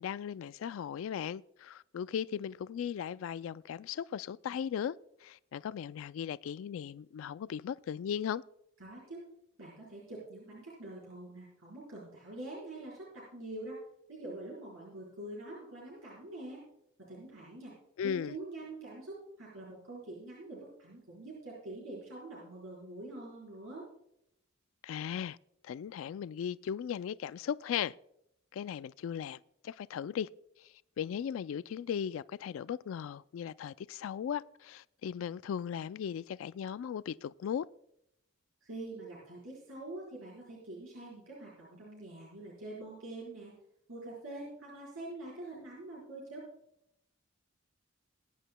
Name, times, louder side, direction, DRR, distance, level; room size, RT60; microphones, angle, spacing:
voice 1, 0.0-5.0 5.2-8.4 18.0-18.3 24.8-25.4 25.6-27.9 28.5-30.3 30.6-37.7, left 8 dB, 75° left, 0.3 m, -37 dB
voice 2, 8.8-9.2 9.6-13.8 14.1-16.6 17.1-17.7 18.0-23.8 38.6-43.5 43.9-46.5, right 2 dB, 85° right, 4.2 m, -45 dB
20.5 x 10.0 x 2.2 m
head